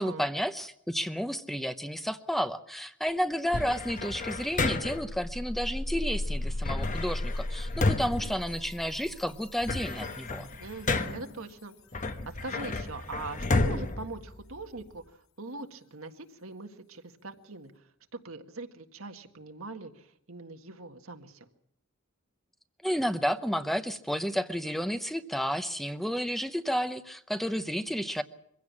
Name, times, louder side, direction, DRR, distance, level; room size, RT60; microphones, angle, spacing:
voice 1, 0.0-10.5 22.8-28.2, equal, ahead, 10 dB, 0.8 m, -31 dB
sound 1, 3.5-5.2 6.6-9.1 9.4-11.4 11.9-14.9, left 2 dB, 35° left, 1.2 m, -32 dB
sound 2, 3.8-3.9 4.2-11.0, left 1 dB, 75° left, 0.9 m, -37 dB
voice 2, 10.6-21.5, right 3 dB, 85° right, 6 dB, 1.7 m, -42 dB
23.5 x 16.0 x 7.3 m, 0.75 s
head